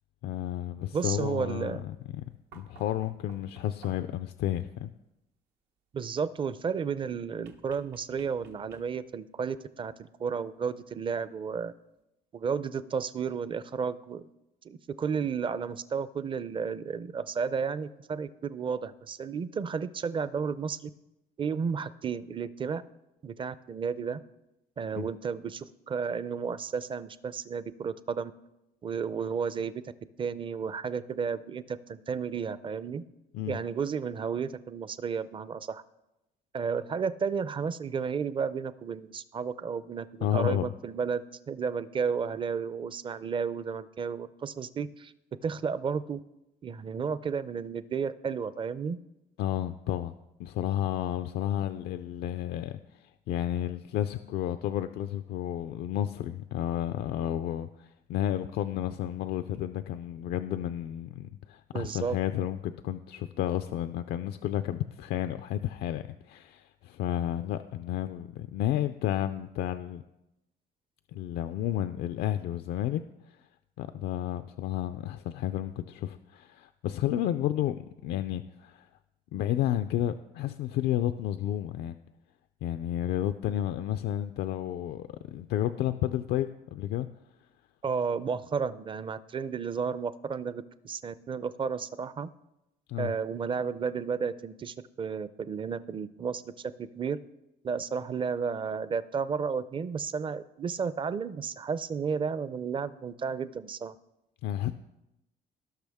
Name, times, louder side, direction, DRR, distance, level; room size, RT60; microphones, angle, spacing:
voice 1, 0.2-2.2 2.5-4.9 25.0-25.1 33.3-33.6 40.2-40.7 49.4-50.1 50.4-70.0 71.1-73.0 73.3-73.4 73.8-78.9 79.3-82.0 82.6-87.1 92.9-93.1 104.4-104.7, left 12 dB, 75° left, 10 dB, 0.4 m, -31 dB
voice 2, 0.9-1.8 5.9-11.7 12.3-14.2 14.6-20.9 21.4-22.8 23.2-24.2 24.8-28.3 28.8-29.9 30.2-33.0 33.5-35.8 36.5-45.1 45.4-46.2 46.6-49.0 61.7-62.2 87.8-92.3 93.0-97.2 97.6-103.9, right 6 dB, 30° right, 16 dB, 0.5 m, -32 dB
sound 1, 2.5-4.3 7.4-9.2 10.7-10.8, right 6 dB, 85° right, 1.1 m, -56 dB
17.5 x 6.0 x 3.5 m, 0.91 s
cardioid pair, 110°, 17 cm